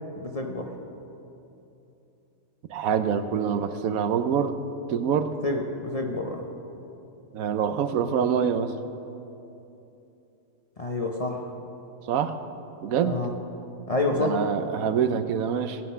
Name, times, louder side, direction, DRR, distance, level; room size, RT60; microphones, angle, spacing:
voice 1, 0.2-0.7 5.4-6.4 10.8-11.4 13.0-13.3 13.9-14.4, left 2 dB, 30° left, 1 dB, 0.7 m, -28 dB
voice 2, 2.7-4.6 4.9-5.3 7.3-8.8 12.0-12.4 12.8-13.2 14.1-15.8, right 7 dB, 75° right, 10 dB, 1.1 m, -25 dB
17.0 x 9.4 x 5.6 m, 2.9 s
omnidirectional pair, 1.5 m